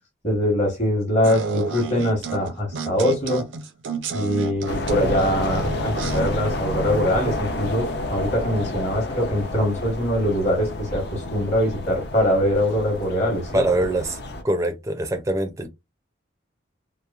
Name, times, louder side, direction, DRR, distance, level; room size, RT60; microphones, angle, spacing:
voice 1, 0.2-3.5 4.1-13.7, equal, 35° left, 1.1 m, -23 dB
sound 1, 1.2-6.3, right 4 dB, 75° right, 0.5 m, -31 dB
sound 2, 4.7-14.4, left 1 dB, 55° left, 0.5 m, -29 dB
voice 2, 13.5-14.2 14.4-15.7, right 1 dB, 15° right, 0.4 m, -23 dB
2.9 x 2.0 x 2.3 m
head